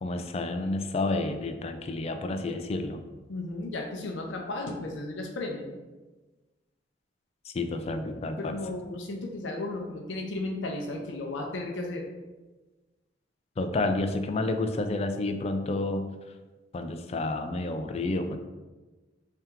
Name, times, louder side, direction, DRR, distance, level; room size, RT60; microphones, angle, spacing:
voice 1, 0.0-3.0 7.5-8.6 13.6-16.1 16.7-18.4, left 2 dB, 35° left, 7 dB, 0.3 m, -30 dB
voice 2, 3.3-5.8 8.4-12.0, left 2 dB, 85° left, 1 dB, 0.5 m, -34 dB
3.4 x 2.9 x 3.5 m, 1.2 s
head